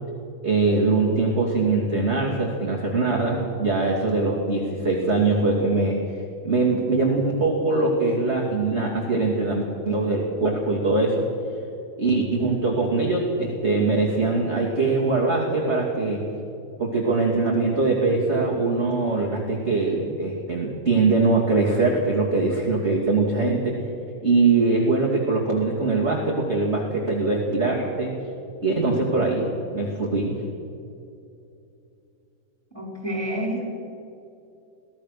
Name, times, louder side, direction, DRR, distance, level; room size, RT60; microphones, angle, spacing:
voice 1, 0.4-6.0 6.4-11.3 12.0-16.2 16.8-23.8 24.2-28.1 28.6-30.4, right 3 dB, 20° right, -3 dB, 2.4 m, -22 dB
voice 2, 32.7-33.7, right 1 dB, 5° left, 0 dB, 4.4 m, -29 dB
23.5 x 17.5 x 6.7 m, 2.7 s
omnidirectional pair, 4.1 m